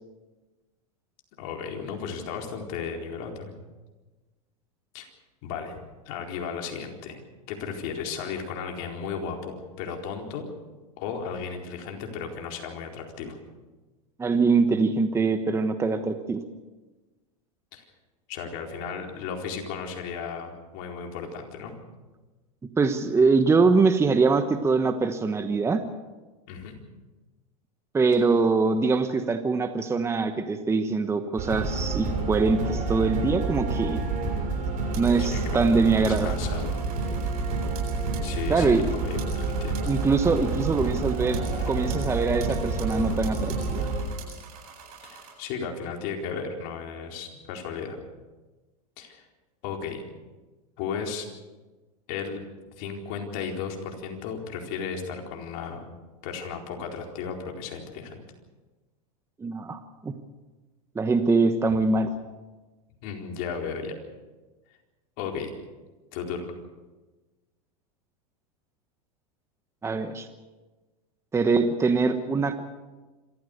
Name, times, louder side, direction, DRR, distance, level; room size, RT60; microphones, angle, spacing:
voice 1, 1.4-3.5 4.9-5.1 5.4-5.8 6.1-7.2 7.5-10.5 11.0-13.4 17.7-17.8 18.3-21.7 26.5-26.8 35.2-35.6 36.1-36.8 38.2-39.8 45.0-48.0 49.0-49.3 49.6-50.0 50.8-51.3 52.1-52.4 52.8-55.8 56.2-58.2 63.0-64.0 65.2-65.5 66.1-66.5, left 6 dB, 55° left, 2 dB, 4.3 m, -35 dB
voice 2, 14.2-16.4 22.8-25.8 27.9-34.0 34.9-36.3 38.5-38.9 39.9-43.9 59.4-60.1 60.9-62.1 69.8-70.3 71.3-72.6, right 4 dB, 15° right, 8 dB, 1.2 m, -23 dB
sound 1, 31.4-44.0, right 3 dB, 45° right, 6.4 m, -28 dB
sound 2, 34.9-45.3, right 7 dB, 80° right, 8.0 m, -46 dB
27.0 x 14.5 x 6.8 m, 1.2 s
supercardioid pair, 120°, 19 cm